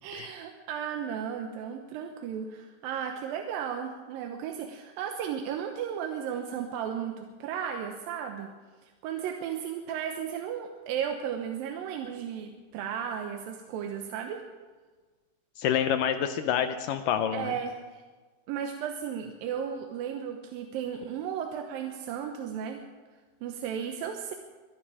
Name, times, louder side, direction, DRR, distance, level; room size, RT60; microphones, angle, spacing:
voice 1, 0.0-8.5 8.8-14.4 17.3-18.0 18.5-22.8 23.4-24.3, right 8 dB, 70° right, 4 dB, 2.4 m, -35 dB
voice 2, 15.6-17.5, left 9 dB, 80° left, 9 dB, 2.0 m, -27 dB
23.5 x 12.0 x 4.9 m, 1.4 s
omnidirectional pair, 4.6 m